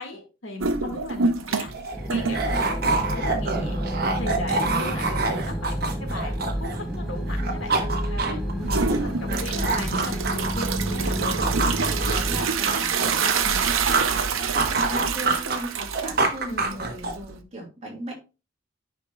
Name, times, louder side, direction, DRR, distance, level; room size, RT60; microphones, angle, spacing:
voice 1, 0.0-1.7 2.1-3.8 4.2-7.7 8.1-11.4 12.0-12.3 12.9-13.1 13.4-13.6 16.5-16.8, left 2 dB, 75° left, 3 dB, 1.8 m, -37 dB
sound 1, 0.6-1.8 2.1-3.4 3.9-4.0 4.6-4.7 8.6-17.4, right 5 dB, 90° right, 0.7 m, -27 dB
sound 2, 1.1-1.2 1.5-7.0 7.3-10.8 11.2-14.2 14.5-17.3, right 3 dB, 50° right, 1.1 m, -27 dB
sound 3, 1.9-12.4, equal, ahead, 0.6 m, -29 dB
voice 2, 2.3-2.7 7.4-7.9 8.2-8.4 9.0-9.8 12.2-13.5 13.8-18.1, right 1 dB, 35° right, -1 dB, 2.3 m, -38 dB
10.0 x 5.2 x 2.3 m, 0.31 s
head